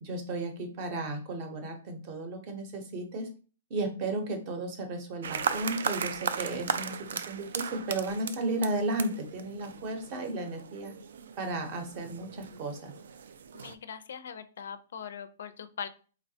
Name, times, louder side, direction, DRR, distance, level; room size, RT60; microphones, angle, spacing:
voice 1, 0.0-3.3 3.7-10.9 11.4-12.9, right 2 dB, 30° right, 5 dB, 0.6 m, -34 dB
sound 1, 5.2-13.7, right 7 dB, 70° right, 0.3 m, -37 dB
voice 2, 13.5-15.9, left 7 dB, 70° left, 12 dB, 0.4 m, -41 dB
3.9 x 2.1 x 2.7 m, 0.38 s
hypercardioid pair, 170°, 0 cm